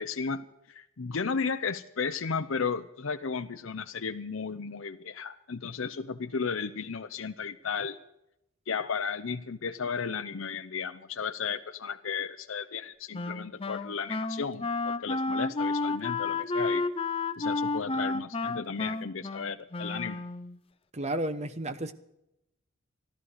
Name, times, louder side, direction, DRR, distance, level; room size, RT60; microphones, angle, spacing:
voice 1, 0.0-8.0 8.7-16.9 17.4-20.2, left 5 dB, 65° left, 0.7 m, -34 dB
Wind instrument woodwind instrument, 13.1-20.6, left 3 dB, 25° left, 0.6 m, -31 dB
voice 2, 20.9-21.9, right 1 dB, 30° right, 0.9 m, -32 dB
14.0 x 12.5 x 6.5 m
head